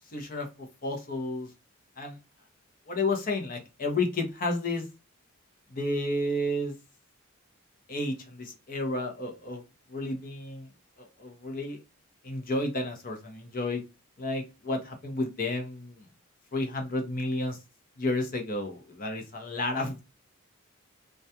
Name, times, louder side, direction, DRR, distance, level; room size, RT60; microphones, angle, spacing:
voice 1, 0.1-1.5 2.0-2.2 2.9-4.8 5.7-6.7 7.9-9.6 9.9-10.7 11.0-11.8 12.2-13.8 14.2-16.1 16.5-17.6 18.0-20.1, left 2 dB, 40° left, 3 dB, 0.7 m, -31 dB
2.3 x 2.2 x 2.7 m, 0.27 s
head